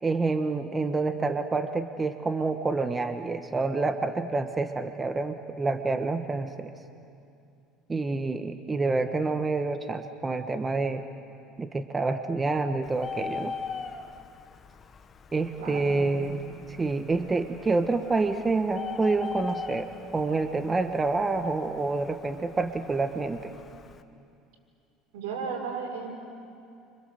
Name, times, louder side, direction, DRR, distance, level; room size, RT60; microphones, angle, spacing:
voice 1, 0.0-6.7 7.9-11.0 11.6-13.5 15.3-16.4 16.7-23.5, right 3 dB, 20° right, 8 dB, 1.3 m, -28 dB
Bird, 12.8-24.0, left 5 dB, 35° left, 1.4 m, -41 dB
voice 2, 15.6-16.1 25.1-26.1, right 5 dB, 85° right, 1 dB, 6.1 m, -34 dB
29.0 x 26.5 x 7.8 m, 2.5 s
supercardioid pair, 110°, 0 cm